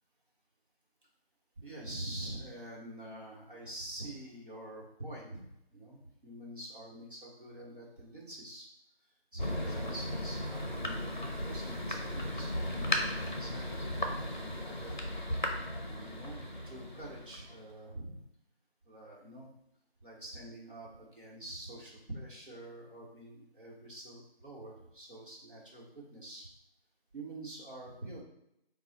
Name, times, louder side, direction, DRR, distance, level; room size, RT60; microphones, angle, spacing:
voice 1, 1.6-8.7 9.3-14.9 15.8-16.4 16.6-18.2 18.8-19.5 20.0-26.5 27.1-28.2, right 1 dB, 55° right, -4 dB, 1.3 m, -46 dB
Thunder, 9.4-17.7, left 1 dB, 50° left, 0.5 m, -36 dB
3.8 x 2.3 x 4.1 m, 0.82 s
figure-of-eight pair, 175°, 32 cm